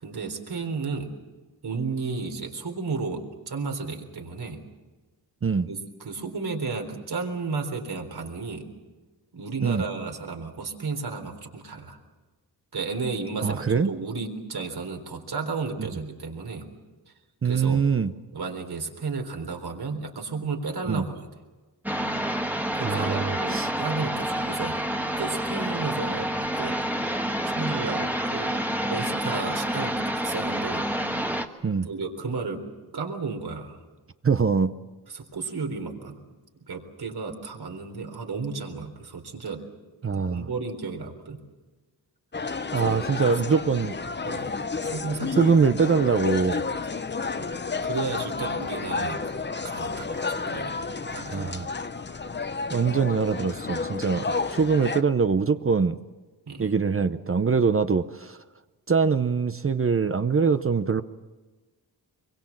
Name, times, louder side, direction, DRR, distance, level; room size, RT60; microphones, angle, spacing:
voice 1, 0.0-1.1 1.6-4.6 5.7-8.7 9.3-12.0 12.7-16.7 17.4-17.8 18.3-21.3 22.7-24.9 25.2-26.3 26.6-26.8 27.5-28.6 28.9-30.9 31.8-32.6 32.9-33.8 35.1-36.1 36.7-39.6 40.3-41.4 42.7-43.3 44.2-44.5 44.8-45.4 45.9-46.1 46.4-46.7 47.4-47.5 47.8-49.4 49.6-51.5 56.5-56.7, right 4 dB, 70° right, 3 dB, 4.0 m, -33 dB
voice 2, 13.4-13.9 17.4-18.1 20.9-21.0 22.8-23.7 31.6-31.9 34.2-34.7 40.0-40.5 42.7-44.0 45.4-46.6 48.8-48.9 51.3-51.7 52.7-56.0 56.6-58.4 58.9-61.0, right 5 dB, 35° right, 10 dB, 0.7 m, -23 dB
sound 1, 21.9-31.5, right 1 dB, 5° right, 1.4 m, -28 dB
sound 2, 42.3-55.0, left 4 dB, 25° left, 0.8 m, -31 dB
25.5 x 23.0 x 7.4 m, 1.2 s
wide cardioid pair, 135°, 40 cm